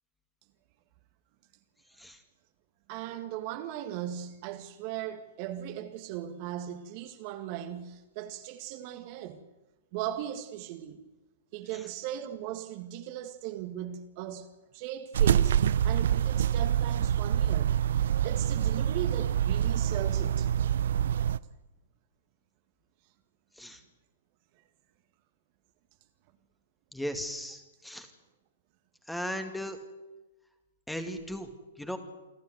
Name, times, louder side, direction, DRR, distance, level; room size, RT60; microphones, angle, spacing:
voice 1, 2.9-9.5 9.9-11.0 11.5-20.5, right 11 dB, 45° right, 1.8 m, -38 dB
sound 1, 15.1-21.4, right 9 dB, 70° right, 0.6 m, -26 dB
voice 2, 26.9-28.1 29.1-29.8 30.9-31.5 31.8-32.0, equal, 5° left, 2.3 m, -37 dB
28.0 x 12.5 x 8.0 m
hypercardioid pair, 115°, 0 cm